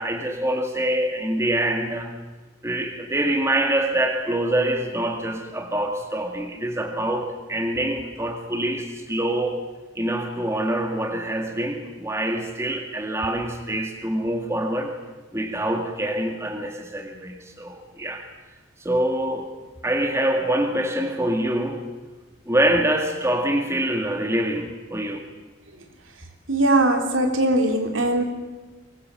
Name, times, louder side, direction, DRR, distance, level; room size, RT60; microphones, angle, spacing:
voice 1, 0.0-2.1 2.6-9.6 10.0-15.0 15.3-18.3 18.8-19.5 19.8-21.9 22.5-25.3, right 1 dB, 15° right, 4 dB, 2.1 m, -25 dB
voice 2, 26.5-28.2, right 2 dB, 75° right, 4 dB, 3.4 m, -20 dB
23.5 x 21.5 x 7.7 m, 1.2 s
head